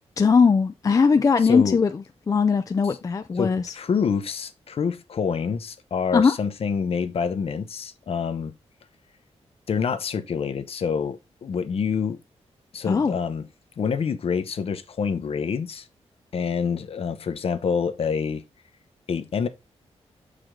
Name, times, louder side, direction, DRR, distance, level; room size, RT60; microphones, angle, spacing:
voice 1, 0.2-3.7 6.1-6.3 12.8-13.2, left 5 dB, 30° left, 0.4 m, -20 dB
voice 2, 1.4-1.8 3.4-8.5 9.7-12.2 12.7-13.4 13.8-15.9 16.3-18.4 19.1-19.5, left 6 dB, 60° left, 0.8 m, -27 dB
6.0 x 5.0 x 3.6 m
wide cardioid pair, 120°, 11 cm